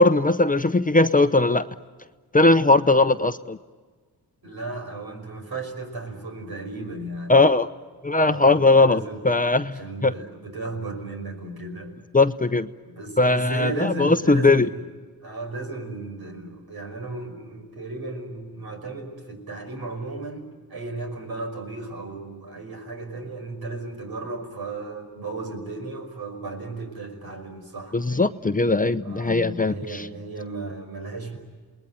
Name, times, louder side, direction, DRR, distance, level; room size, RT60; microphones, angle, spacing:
voice 1, 0.0-1.7 2.3-3.6 7.3-7.7 8.0-9.7 10.0-10.1 12.1-12.7 13.2-14.7 27.9-29.7, left 2 dB, 20° left, 11 dB, 0.8 m, -19 dB
voice 2, 4.4-7.4 8.2-9.2 9.7-12.0 12.8-14.8 15.2-28.3 29.0-31.4, right 2 dB, 70° right, 4 dB, 5.6 m, -35 dB
28.5 x 20.5 x 9.1 m, 1.5 s
cardioid pair, 70°, 38 cm